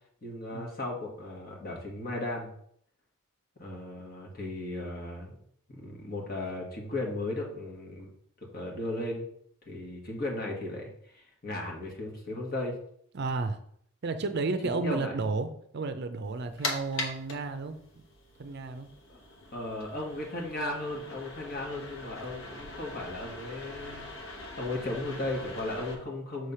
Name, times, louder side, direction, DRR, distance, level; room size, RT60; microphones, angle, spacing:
voice 1, 0.2-2.5 3.6-5.3 5.7-8.1 8.4-9.2 9.7-12.8 14.6-15.2 19.1-19.2 19.5-24.0 24.6-26.5, left 2 dB, 45° left, -1 dB, 1.5 m, -36 dB
voice 2, 13.1-13.6 14.0-15.5 15.7-18.0 18.4-18.9, right 3 dB, 50° right, 9 dB, 0.5 m, -32 dB
sound 1, 16.2-25.9, left 2 dB, 60° left, 1.1 m, -41 dB
6.4 x 3.3 x 5.5 m, 0.67 s
head